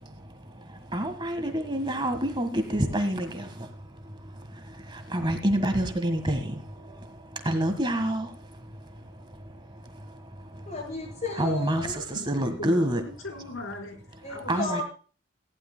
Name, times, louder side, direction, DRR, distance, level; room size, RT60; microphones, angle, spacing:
voice 1, 0.9-3.7 4.9-6.6 7.4-8.3 11.4-13.0 14.5-14.8, right 1 dB, 20° right, 7 dB, 1.5 m, -27 dB
voice 2, 10.7-12.0 14.2-14.8, left 2 dB, 30° left, 1 dB, 7.2 m, -33 dB
voice 3, 12.6-14.8, left 1 dB, 70° left, 3 dB, 4.5 m, -39 dB
19.0 x 15.5 x 2.2 m, 0.38 s
head